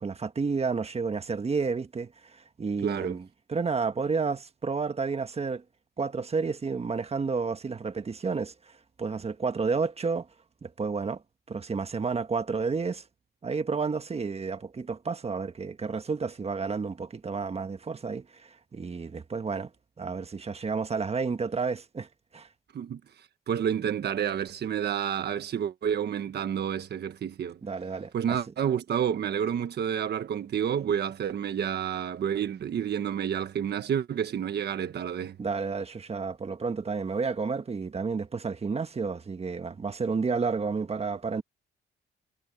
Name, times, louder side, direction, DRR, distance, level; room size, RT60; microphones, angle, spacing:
voice 1, 0.0-5.6 6.0-8.5 9.0-10.3 10.6-11.2 11.5-13.0 13.4-19.7 20.0-22.1 22.3-22.5 27.6-28.4 35.4-41.4, right 4 dB, 30° right, 1.5 m, -31 dB
voice 2, 2.8-3.2 22.7-27.6 28.1-35.4, right 8 dB, 55° right, 1.4 m, -29 dB
cardioid pair, 90°, 20 cm